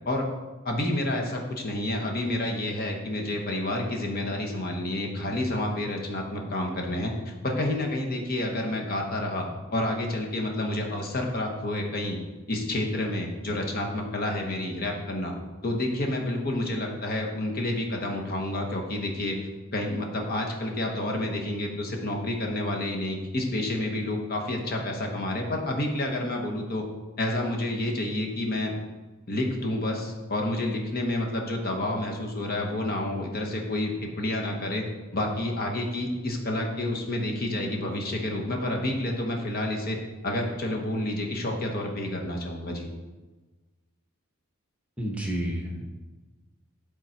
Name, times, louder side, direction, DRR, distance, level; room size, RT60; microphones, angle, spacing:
voice 1, 0.6-7.1 7.4-9.4 9.7-12.2 12.5-15.3 15.6-19.4 19.7-26.8 27.2-28.7 29.3-34.8 35.1-40.0 40.2-42.9, left 1 dB, 45° left, 1 dB, 1.0 m, -29 dB
voice 2, 45.0-45.9, equal, 5° right, 0 dB, 0.9 m, -30 dB
8.9 x 3.8 x 4.4 m, 1.2 s
head